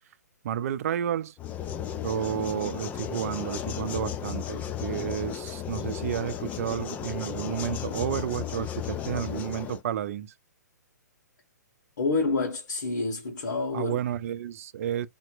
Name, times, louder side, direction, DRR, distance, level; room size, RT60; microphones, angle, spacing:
voice 1, 0.4-1.3 2.0-10.3 13.7-15.1, right 10 dB, 50° right, 0.5 m, -31 dB
sound 1, 1.4-9.8, left 9 dB, 15° left, 0.4 m, -34 dB
voice 2, 12.0-14.0, left 3 dB, 65° left, 1.4 m, -28 dB
4.3 x 2.9 x 2.4 m
hypercardioid pair, 135°, 10 cm